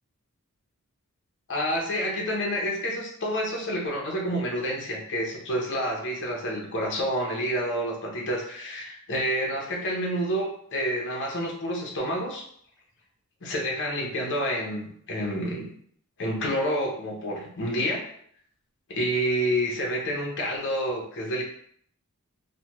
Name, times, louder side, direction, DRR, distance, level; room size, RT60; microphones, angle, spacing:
voice 1, 1.5-12.4 13.4-15.6 16.2-18.0 18.9-21.4, equal, 55° left, -1 dB, 0.7 m, -28 dB
3.2 x 2.1 x 2.9 m, 0.63 s
head